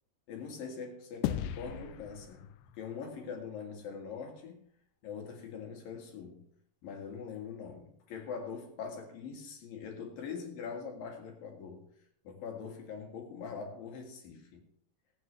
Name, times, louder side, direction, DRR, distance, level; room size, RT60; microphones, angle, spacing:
voice 1, 0.3-4.7 5.0-6.5 6.8-11.9 12.2-14.6, left 6 dB, 60° left, 2 dB, 3.3 m, -43 dB
sound 1, 1.2-3.9, left 11 dB, 85° left, 2.9 m, -39 dB
18.0 x 8.7 x 3.2 m, 0.65 s
omnidirectional pair, 5.1 m